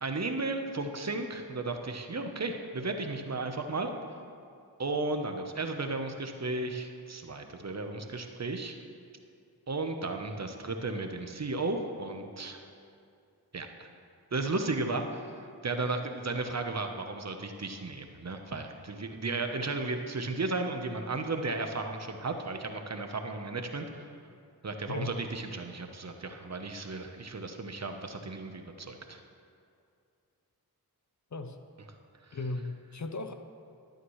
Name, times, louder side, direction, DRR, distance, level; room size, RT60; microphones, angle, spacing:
voice 1, 0.0-3.9 4.8-8.8 9.7-12.7 13.5-13.9 14.3-24.1 24.6-29.2 32.2-32.4, right 3 dB, 45° right, 5 dB, 0.9 m, -34 dB
voice 2, 32.3-33.3, left 2 dB, 45° left, 8 dB, 0.7 m, -36 dB
12.5 x 9.0 x 3.2 m, 2.4 s
cardioid pair, 45°, 39 cm